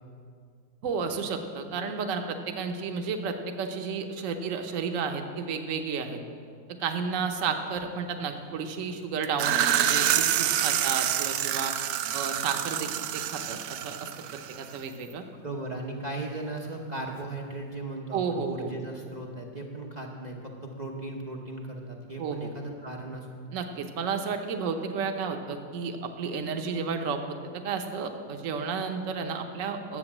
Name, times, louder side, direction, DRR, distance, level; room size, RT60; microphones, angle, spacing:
voice 1, 0.8-6.2 6.8-11.7 12.1-14.1 14.6-15.2 18.1-18.7 22.2-22.5 23.5-27.4 27.6-30.0, right 5 dB, 50° right, 5 dB, 1.1 m, -32 dB
sound 1, 9.2-14.8, right 11 dB, 75° right, 0.8 m, -27 dB
voice 2, 15.4-23.3 23.7-23.8, right 2 dB, 35° right, 0 dB, 0.6 m, -37 dB
11.0 x 8.4 x 7.2 m, 2.2 s
omnidirectional pair, 2.1 m